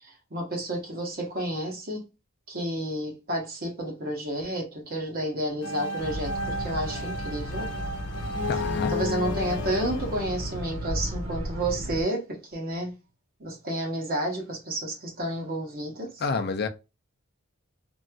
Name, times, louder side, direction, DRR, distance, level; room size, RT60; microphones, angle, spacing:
voice 1, 0.0-2.0 2.5-7.7 8.9-12.9 13.4-16.2, right 1 dB, 40° right, 0.9 m, -31 dB
sound 1, 5.6-11.4, left 2 dB, 85° left, 0.7 m, -34 dB
sound 2, 6.0-12.0, equal, 60° right, 1.7 m, -34 dB
voice 2, 8.5-8.9 16.2-16.7, left 4 dB, 45° left, 0.4 m, -28 dB
3.1 x 2.7 x 2.2 m
head